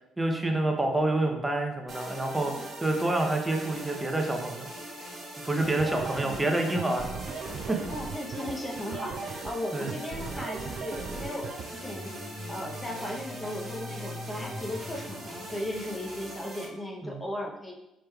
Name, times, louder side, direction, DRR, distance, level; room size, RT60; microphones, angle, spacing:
voice 1, 0.2-2.5 2.8-4.7 5.4-7.0 7.7-7.8 9.7-9.9 17.0-17.2, right 2 dB, 15° right, 3 dB, 0.6 m, -27 dB
sound 1, 1.9-16.7, right 1 dB, 45° right, 1.3 m, -41 dB
voice 2, 5.5-6.5 7.9-12.1 12.5-17.7, left 1 dB, 20° left, 0 dB, 0.7 m, -37 dB
sound 2, 5.6-11.6, right 5 dB, 60° right, 0.3 m, -38 dB
sound 3, 11.6-16.4, left 2 dB, 60° left, 1.3 m, -44 dB
4.9 x 3.1 x 2.3 m, 0.87 s
supercardioid pair, 75°, 0 cm